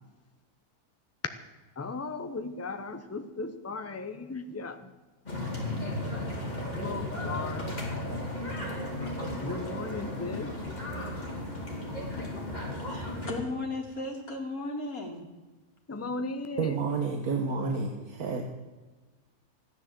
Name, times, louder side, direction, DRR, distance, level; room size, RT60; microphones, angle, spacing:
voice 1, 1.8-4.9 6.7-7.8 9.4-10.5 15.9-16.8, left 3 dB, 10° left, 0.8 m, -36 dB
sound 1, 5.2-13.4, left 1 dB, 30° left, 3.7 m, -35 dB
voice 2, 12.8-15.2, left 2 dB, 75° left, 3.0 m, -35 dB
voice 3, 16.6-18.4, right 4 dB, 80° right, 1.7 m, -30 dB
14.5 x 10.5 x 7.7 m
omnidirectional pair, 1.5 m